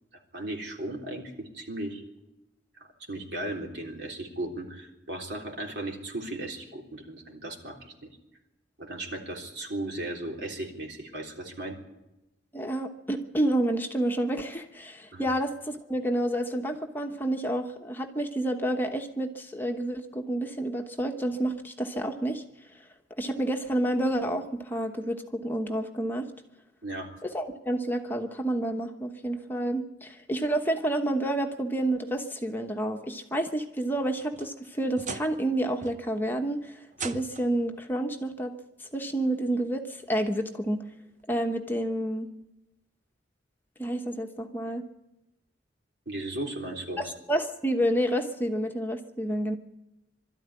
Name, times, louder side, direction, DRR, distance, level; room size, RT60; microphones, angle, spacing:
voice 1, 0.3-2.0 2.8-8.1 8.8-11.8 15.1-15.3 26.8-27.1 46.1-47.1, right 1 dB, 70° right, 1 dB, 3.6 m, -36 dB
voice 2, 12.5-22.4 23.2-26.3 27.2-38.5 38.8-40.8 41.3-42.3 43.8-44.8 47.0-49.6, right 1 dB, 10° left, 3 dB, 1.1 m, -29 dB
sound 1, 33.9-35.5 35.8-36.3 36.9-37.6 38.8-38.9 39.5-39.6 41.2-41.3, right 4 dB, 40° right, 0.9 m, -40 dB
22.0 x 13.0 x 9.7 m, 0.96 s
head